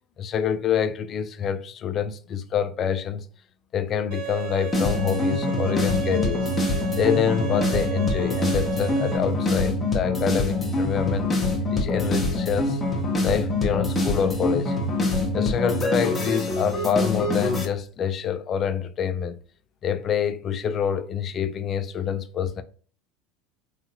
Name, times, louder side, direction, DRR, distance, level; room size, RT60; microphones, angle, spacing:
voice 1, 0.2-3.2 3.7-6.5 7.0-11.3 11.7-12.8 13.2-14.8 15.3-19.4 19.8-22.6, left 8 dB, 40° left, 0.3 m, -26 dB
Bowed string instrument, 4.1-9.2, right 12 dB, 70° right, 1.1 m, -34 dB
sound 1, 4.7-17.6, left 2 dB, 20° left, 0.8 m, -25 dB
2.8 x 2.3 x 2.7 m
supercardioid pair, 100°, 0 cm